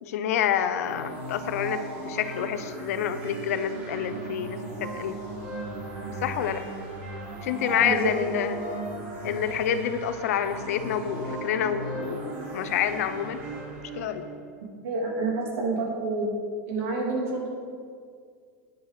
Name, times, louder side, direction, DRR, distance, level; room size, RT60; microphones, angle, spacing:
voice 1, 0.0-5.2 6.2-6.6 7.4-8.6 9.2-13.4 13.9-14.3, left 9 dB, 85° left, 10 dB, 0.8 m, -28 dB
sound 1, 0.8-14.3, right 2 dB, 50° right, 3.2 m, -37 dB
voice 2, 7.6-8.1 14.8-16.3 16.7-17.5, right 3 dB, 70° right, -2 dB, 3.2 m, -28 dB
9.6 x 9.1 x 5.1 m, 2.1 s
supercardioid pair, 180°, 8 cm